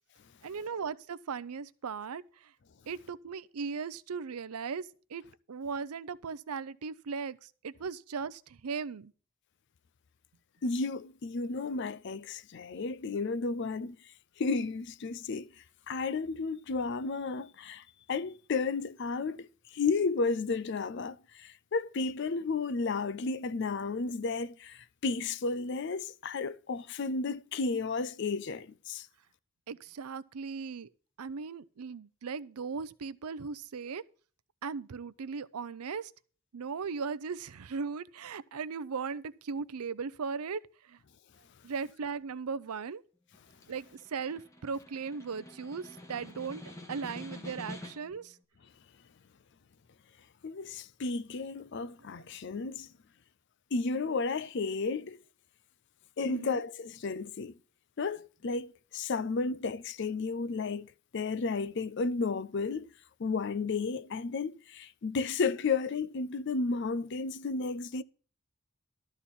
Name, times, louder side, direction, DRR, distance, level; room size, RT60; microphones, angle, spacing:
voice 1, 0.4-2.5 2.9-9.1 29.7-30.9 31.2-34.0 34.6-36.1 36.5-40.6 40.9-41.0 41.6-43.0 43.7-46.6 46.9-48.4 52.1-52.3 56.2-56.6, right 5 dB, 85° right, 0.5 m, -38 dB
voice 2, 10.6-14.0 14.4-15.5 15.9-29.1 50.4-52.9 53.7-55.2 56.2-57.5 58.0-62.9 63.2-68.0, left 4 dB, 50° left, 0.4 m, -33 dB
Snare drum, 43.3-48.2, left 1 dB, 15° left, 1.3 m, -47 dB
12.5 x 4.3 x 8.3 m
head